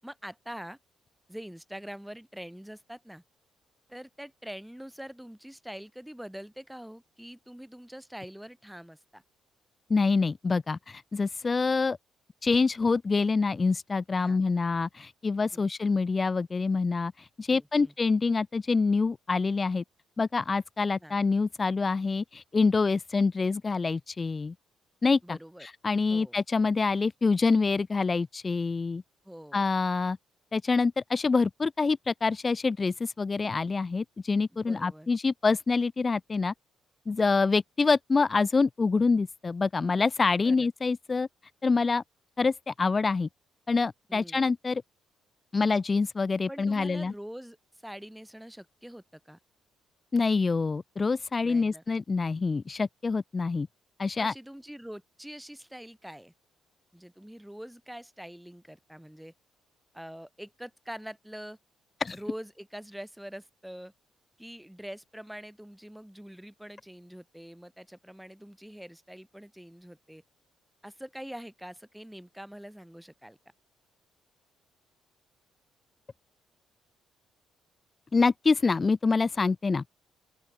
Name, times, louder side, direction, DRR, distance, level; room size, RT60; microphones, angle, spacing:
voice 1, 0.0-0.8 1.3-3.2 3.9-9.2 14.2-14.4 15.5-15.7 17.5-17.9 21.0-21.2 25.2-25.7 26.1-26.4 29.2-29.6 34.5-35.1 40.4-40.7 44.1-44.5 46.5-49.4 51.4-51.8 54.2-56.3 56.9-59.3 59.9-61.6 62.1-63.9 64.4-70.2 70.8-73.4, equal, 5° right, 6.3 m, -44 dB
voice 2, 9.9-12.0 12.4-19.8 20.2-24.5 25.0-29.0 29.5-30.2 30.5-36.5 37.1-41.3 41.6-42.0 42.4-43.3 43.7-44.8 45.5-47.1 50.1-53.7 54.0-54.3 62.0-62.2 78.1-79.8, left 4 dB, 35° left, 0.7 m, -26 dB
open air
supercardioid pair, 60°, 0 cm